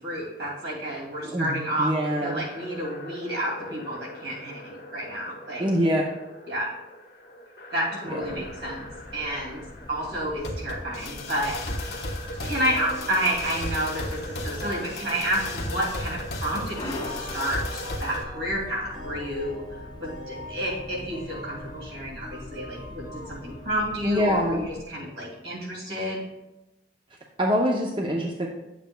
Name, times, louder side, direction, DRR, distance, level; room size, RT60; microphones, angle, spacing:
voice 1, 0.0-5.7 6.5-6.7 7.7-8.9 9.1-9.6 9.9-12.1 12.4-19.6 20.0-26.2, equal, 75° right, -3 dB, 2.4 m, -30 dB
voice 2, 1.2-2.5 5.6-6.0 8.1-8.5 24.0-24.6 27.4-28.5, equal, 25° right, 0 dB, 0.6 m, -25 dB
sound 1, 2.2-18.2, left 1 dB, 65° left, 1.1 m, -37 dB
sound 2, 8.2-24.8, left 2 dB, 25° left, 0.4 m, -43 dB
sound 3, 12.4-24.8, equal, 45° right, 2.3 m, -43 dB
10.0 x 7.3 x 2.2 m, 0.95 s
head